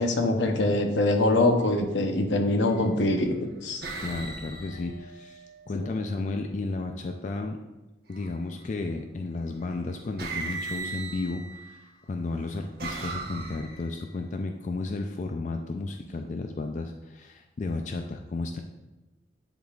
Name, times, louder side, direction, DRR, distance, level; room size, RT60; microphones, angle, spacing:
voice 1, 0.0-3.3 3.6-3.9, left 2 dB, 80° left, 4 dB, 0.8 m, -23 dB
sound 1, 1.5-1.8 2.7-3.2 3.8-5.9 8.1-8.6 9.7-9.8 10.2-11.8 12.4-14.1, right 3 dB, 55° right, 1.0 m, -38 dB
voice 2, 3.9-7.6 8.1-18.6, left 3 dB, 40° left, 4 dB, 0.3 m, -33 dB
10.5 x 3.9 x 2.4 m, 1.1 s
head